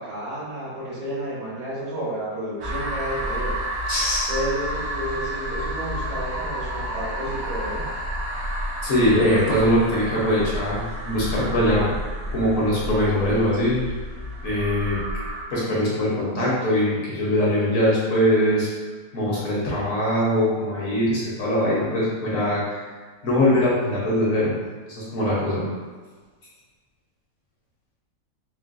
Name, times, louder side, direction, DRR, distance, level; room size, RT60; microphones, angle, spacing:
voice 1, 0.0-3.6 4.3-7.9, right 1 dB, 90° right, -10 dB, 1.9 m, -31 dB
sound 1, 2.6-15.4, equal, 70° right, 0.6 m, -30 dB
voice 2, 3.9-4.3 8.8-11.9 12.3-13.8 14.4-15.0 15.5-18.7 19.1-22.8 23.2-24.6 24.9-25.7, left 1 dB, 60° left, -6 dB, 1.2 m, -22 dB
3.8 x 2.0 x 2.5 m, 1.5 s
omnidirectional pair, 1.7 m